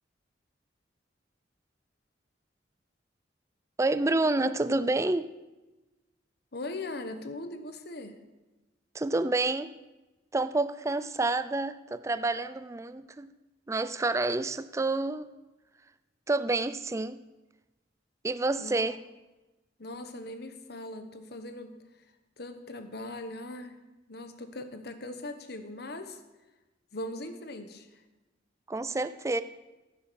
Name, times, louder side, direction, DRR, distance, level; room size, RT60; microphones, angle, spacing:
voice 1, 3.8-5.3 8.9-9.7 10.3-13.3 13.7-15.3 16.3-17.2 18.2-19.0 28.7-29.4, right 2 dB, 15° right, 13 dB, 0.4 m, -28 dB
voice 2, 6.5-8.2 18.6-18.9 19.8-22.1 22.4-23.8 24.1-26.2 26.9-28.0, left 2 dB, 60° left, 9 dB, 1.1 m, -40 dB
14.5 x 7.4 x 6.3 m, 1.1 s
head